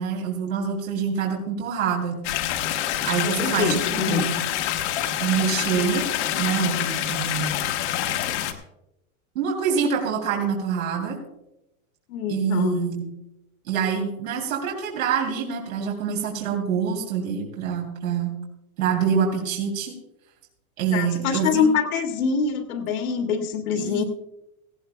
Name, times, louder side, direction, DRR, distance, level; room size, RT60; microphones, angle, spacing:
voice 1, 0.0-2.2 3.0-4.4 5.2-6.1 6.4-7.6 9.3-11.2 12.3-13.1 13.7-18.4 18.8-19.9 20.8-21.7 23.8-24.0, right 7 dB, 65° right, -1 dB, 3.3 m, -25 dB
sound 1, 2.2-8.5, left 11 dB, 50° left, 1.3 m, -26 dB
voice 2, 3.2-4.3 12.1-12.8 20.9-24.0, left 6 dB, 70° left, 3 dB, 2.1 m, -25 dB
18.0 x 16.0 x 2.3 m, 0.88 s
supercardioid pair, 160°, 44 cm